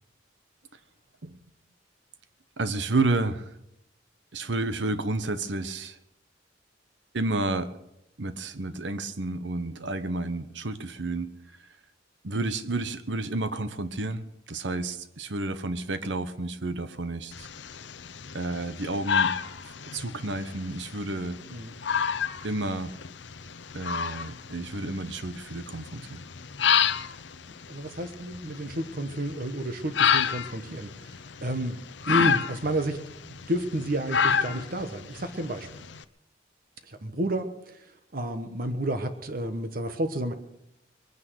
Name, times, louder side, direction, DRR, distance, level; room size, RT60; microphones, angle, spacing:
voice 1, 2.6-3.5 4.3-6.0 7.1-7.7 8.2-11.3 12.2-17.5 18.3-19.3 19.6-21.4 22.4-22.9 23.7-26.2, right 2 dB, 75° right, 11 dB, 1.1 m, -31 dB
sound 1, 17.3-36.0, left 7 dB, 70° left, 0.7 m, -30 dB
voice 2, 27.7-31.8 32.1-33.0 33.3-35.7 36.9-37.8 38.1-40.3, right 1 dB, 50° right, 8 dB, 1.2 m, -31 dB
22.0 x 9.7 x 6.3 m, 0.83 s
head